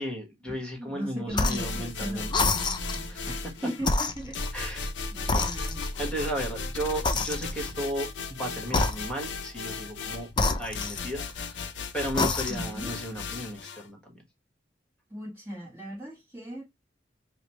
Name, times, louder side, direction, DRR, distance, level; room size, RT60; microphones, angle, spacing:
voice 1, 0.0-2.4 3.1-3.4 4.5-4.9 6.0-10.3 10.6-14.1, right 1 dB, 5° left, 1.3 m, -35 dB
voice 2, 0.8-4.8 5.1-5.8 12.5-12.9 15.1-16.6, equal, 15° right, 0.9 m, -38 dB
sound 1, 1.3-1.8 2.3-3.1 3.8-4.9 5.3-6.1 7.0-7.8 8.7-9.4 10.3-11.4 12.0-12.8, left 3 dB, 25° left, 0.4 m, -28 dB
sound 2, 1.6-3.9 4.3-13.8, left 4 dB, 80° left, 0.6 m, -36 dB
4.9 x 2.0 x 2.9 m
head